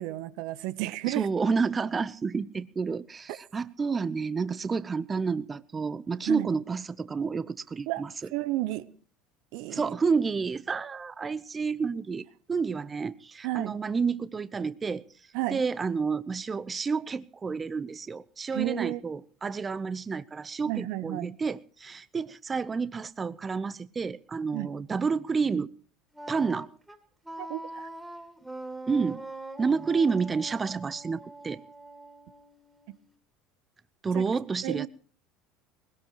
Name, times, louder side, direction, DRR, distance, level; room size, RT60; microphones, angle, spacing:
voice 1, 0.0-1.3 3.3-3.4 6.3-6.5 7.9-8.0 8.3-8.9 9.5-9.8 13.4-13.7 15.3-15.6 18.5-19.0 20.7-21.4 24.5-24.8 27.4-27.9 34.1-34.2 34.6-34.9, right 17 dB, 70° right, 0.8 m, -32 dB
voice 2, 1.1-8.1 9.7-15.0 15.5-25.7 26.3-26.7 28.9-29.2 29.6-31.6 34.0-34.9, right 5 dB, 25° right, 0.7 m, -30 dB
Wind instrument woodwind instrument, 26.1-33.1, right 2 dB, 5° right, 2.6 m, -43 dB
20.5 x 17.5 x 3.0 m
hypercardioid pair, 80°, 0 cm